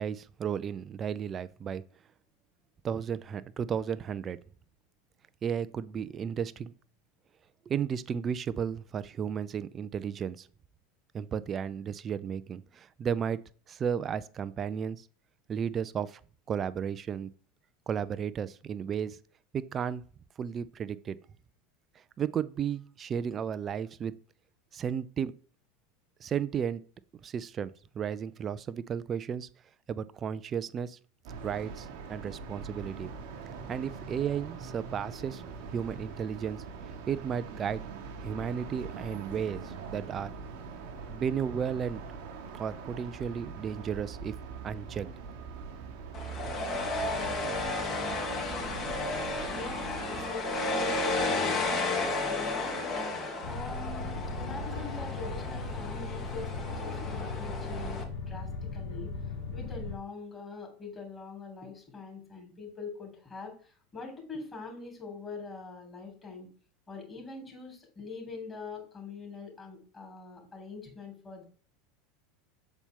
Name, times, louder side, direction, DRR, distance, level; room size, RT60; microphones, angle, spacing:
voice 1, 0.0-1.8 2.8-4.4 5.4-6.7 7.7-10.5 11.1-13.4 13.7-15.1 15.5-16.2 16.5-17.3 17.9-19.2 19.5-20.0 20.4-21.2 22.2-24.1 24.7-25.3 26.2-26.8 27.2-29.5 29.9-31.0 31.4-33.1 33.7-35.4 35.7-36.6 37.1-37.8 38.2-40.3 41.1-42.0 42.5-44.4 44.6-45.1, right 7 dB, 35° right, 0.4 m, -33 dB
sound 1, 31.2-50.3, right 5 dB, 60° right, 1.0 m, -42 dB
sound 2, 46.1-58.0, left 2 dB, 40° left, 1.8 m, -33 dB
voice 2, 49.5-53.1 53.4-59.1 59.5-66.5 66.9-71.4, left 4 dB, 25° left, 2.8 m, -43 dB
sound 3, 53.4-60.0, left 3 dB, 70° left, 1.4 m, -37 dB
7.0 x 4.3 x 3.6 m
hypercardioid pair, 80°, 0 cm